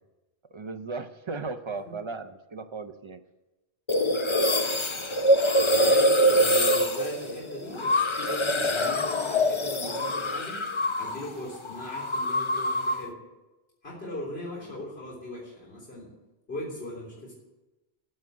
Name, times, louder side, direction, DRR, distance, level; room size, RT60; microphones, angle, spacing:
voice 1, 0.5-3.2 14.7-14.8, right 4 dB, 30° right, 8 dB, 0.6 m, -36 dB
sound 1, 3.9-11.3 11.5-13.1, equal, 30° left, 0.7 m, -24 dB
voice 2, 5.6-10.6 11.0-13.2 13.8-16.1 16.5-17.3, left 1 dB, 65° left, -6 dB, 4.0 m, -39 dB
15.0 x 5.4 x 9.5 m, 1.1 s
omnidirectional pair, 1.1 m